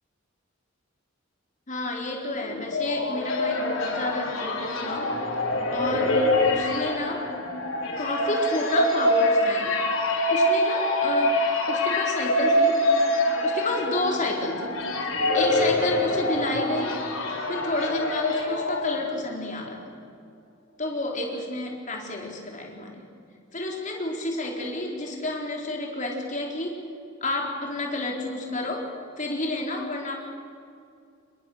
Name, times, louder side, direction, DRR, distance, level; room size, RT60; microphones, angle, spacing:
voice 1, 1.7-5.1 5.7-7.3 8.0-9.8 10.3-11.4 11.7-12.8 13.4-14.8 15.3-17.0 17.5-19.8 20.8-23.0 23.5-26.8 27.2-28.9 29.2-30.2, left 1 dB, 35° left, 1 dB, 4.2 m, -30 dB
sound 1, 2.4-19.4, left 1 dB, 80° left, 4.4 m, -25 dB
27.5 x 22.0 x 6.6 m, 2.4 s
head